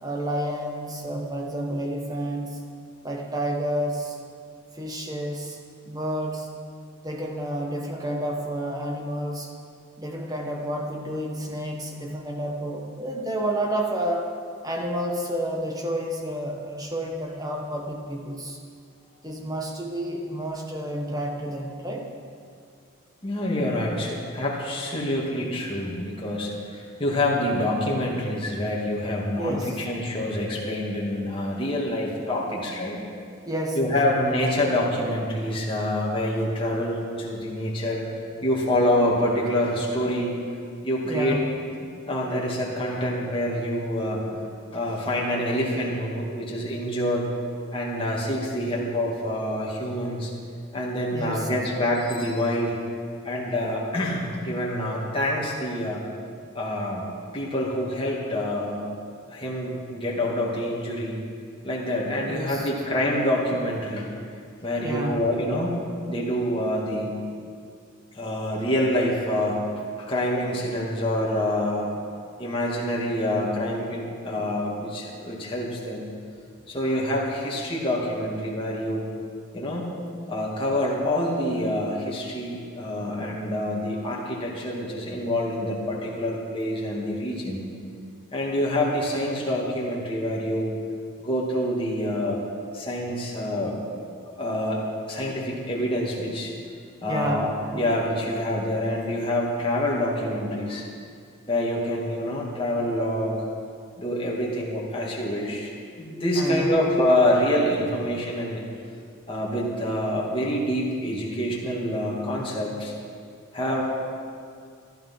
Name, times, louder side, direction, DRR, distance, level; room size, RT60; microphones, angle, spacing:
voice 1, 0.0-2.6 3.0-4.2 4.7-5.6 5.8-6.5 7.0-9.5 10.0-14.3 14.6-18.6 19.2-22.1 29.4-29.8 33.4-33.9 41.0-41.5 51.1-51.5 62.2-62.7 64.8-65.3 97.1-97.6 106.3-106.8, right 1 dB, 15° right, 1 dB, 1.3 m, -30 dB
voice 2, 23.2-33.0 33.7-38.0 38.4-40.3 40.8-41.4 41.8-44.4 44.7-47.3 47.7-50.3 50.7-52.8 53.2-56.0 56.5-57.1 57.3-58.9 59.3-61.2 61.6-64.1 64.6-65.8 66.1-67.2 68.1-69.7 70.0-72.0 72.4-76.1 76.7-79.0 79.5-79.9 80.3-87.6 88.3-90.7 91.2-92.4 92.7-93.8 94.2-94.8 95.1-96.5 97.0-100.9 101.5-103.3 104.0-108.6 109.3-112.9 113.5-113.8, left 1 dB, 25° left, -4 dB, 2.4 m, -26 dB
14.5 x 11.5 x 5.7 m, 2.3 s
head